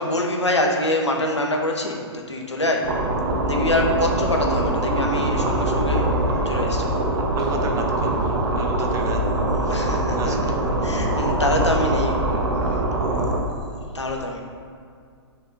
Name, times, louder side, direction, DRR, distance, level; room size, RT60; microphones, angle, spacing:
voice 1, 0.0-2.9 3.4-6.1 6.4-7.0 9.7-10.5 10.8-12.2 13.0-13.1 13.9-14.4, left 1 dB, 85° left, 2 dB, 1.2 m, -25 dB
sound 1, 2.8-13.4, right 1 dB, 65° right, 1.5 m, -23 dB
sound 2, 3.1-9.0, equal, 5° left, 1.6 m, -35 dB
voice 2, 7.1-9.3 9.6-10.5, right 4 dB, 20° right, 3 dB, 0.9 m, -33 dB
6.4 x 4.2 x 6.5 m, 2.2 s
figure-of-eight pair, 115°, 14 cm